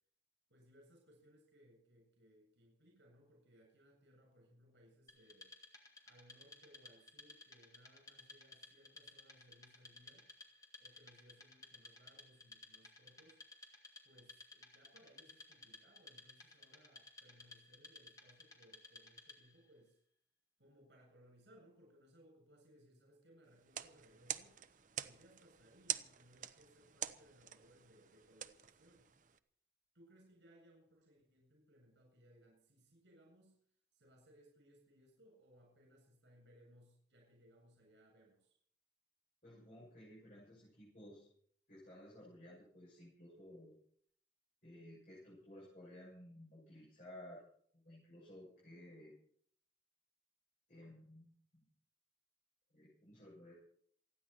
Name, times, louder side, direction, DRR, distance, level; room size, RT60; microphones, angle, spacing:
voice 1, 0.5-5.5 6.0-10.3 10.8-13.4 14.0-20.0 20.6-24.6 25.0-29.1 29.9-33.5 33.9-38.6, equal, 80° right, 0 dB, 7.9 m, -66 dB
Wood, 5.1-19.6, left 3 dB, 20° left, 2.6 m, -58 dB
sound 1, 23.6-29.4, right 10 dB, 45° right, 0.8 m, -46 dB
voice 2, 39.4-41.3 41.7-43.7 44.6-47.4 47.7-49.1 50.7-51.6 52.7-53.5, left 1 dB, 45° left, -6 dB, 7.2 m, -56 dB
28.0 x 10.5 x 4.4 m, 0.62 s
head